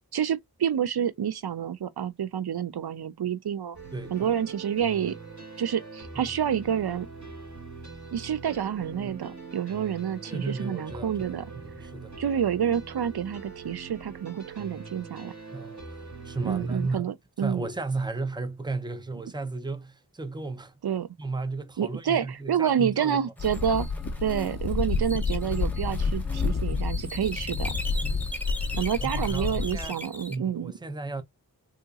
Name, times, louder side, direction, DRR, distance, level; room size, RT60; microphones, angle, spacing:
voice 1, 0.1-3.8 4.1-5.2 5.6-7.1 8.1-11.4 12.2-15.3 16.4-17.7 20.8-21.1 21.8-23.9 24.2-27.7 28.8-30.7, right 8 dB, 80° right, 0.5 m, -28 dB
sound 1, 3.7-16.9, right 4 dB, 50° right, 2.4 m, -43 dB
voice 2, 3.9-4.3 8.9-9.2 10.3-11.3 11.6-12.2 15.5-17.1 17.4-20.7 21.2-23.3 28.1-28.3 28.9-30.0 30.3-31.2, right 3 dB, 10° right, 0.6 m, -34 dB
sound 2, 23.4-29.9, left 4 dB, 45° left, 0.5 m, -29 dB
sound 3, 23.4-30.4, left 1 dB, 5° left, 0.9 m, -40 dB
3.8 x 2.8 x 2.3 m
wide cardioid pair, 50°, 38 cm